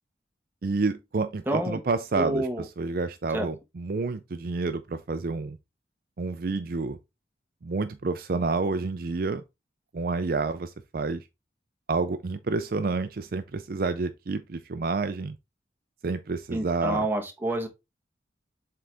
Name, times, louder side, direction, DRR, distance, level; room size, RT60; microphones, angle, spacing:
voice 1, 0.6-5.6 6.2-7.0 7.6-9.4 9.9-11.3 11.9-15.4 16.0-17.1, right 3 dB, 50° right, 0.4 m, -29 dB
voice 2, 1.5-1.8 2.1-2.6 3.3-3.5 16.5-17.7, right 1 dB, 10° right, 1.1 m, -28 dB
7.5 x 3.9 x 3.4 m
head